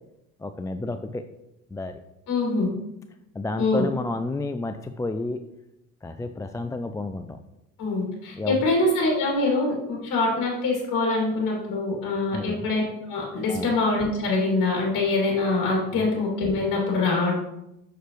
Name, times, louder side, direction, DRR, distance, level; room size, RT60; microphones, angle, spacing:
voice 1, 0.4-1.2 1.7-2.0 3.3-5.4 6.0-7.3 8.4-8.6 12.3-12.6 13.5-13.7 15.9-16.1, left 2 dB, 10° left, 8 dB, 0.3 m, -31 dB
voice 2, 2.3-2.7 3.6-3.9 7.8-12.8 13.1-17.3, left 3 dB, 55° left, -2 dB, 2.8 m, -24 dB
6.8 x 6.5 x 3.1 m, 0.88 s
hypercardioid pair, 65°, 40 cm